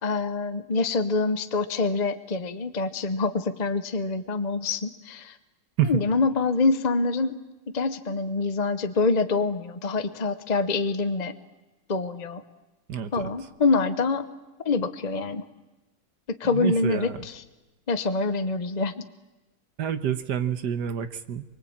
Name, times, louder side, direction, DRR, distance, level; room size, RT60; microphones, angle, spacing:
voice 1, 0.0-5.4 5.9-7.4 7.7-11.3 11.9-12.4 13.1-14.3 14.6-15.4 16.3-17.1 17.9-19.0, left 3 dB, 40° left, 9 dB, 0.6 m, -25 dB
voice 2, 12.9-13.3 16.5-17.3 19.8-21.4, right 9 dB, 60° right, 11 dB, 1.7 m, -28 dB
24.5 x 23.5 x 8.7 m, 1.1 s
omnidirectional pair, 2.2 m